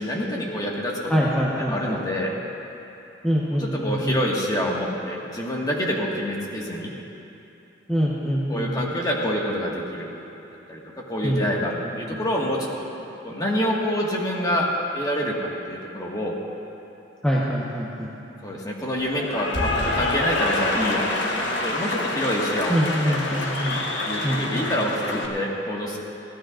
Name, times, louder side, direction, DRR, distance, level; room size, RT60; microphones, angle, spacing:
voice 1, 0.0-1.4 1.7-2.4 3.6-6.9 8.5-10.1 10.7-10.8 11.1-12.9 13.2-14.7 14.9-16.4 18.4-23.2 24.1-26.0, equal, 20° left, -3 dB, 1.8 m, -27 dB
voice 2, 1.1-2.0 3.2-4.2 7.9-8.9 11.2-11.4 11.8-12.2 17.2-18.1 22.7-23.8 24.2-24.7, equal, 5° left, -7 dB, 1.2 m, -24 dB
Cheering / Applause, 19.0-25.3, left 2 dB, 70° left, 1.4 m, -27 dB
24.0 x 15.5 x 2.6 m, 2.9 s
head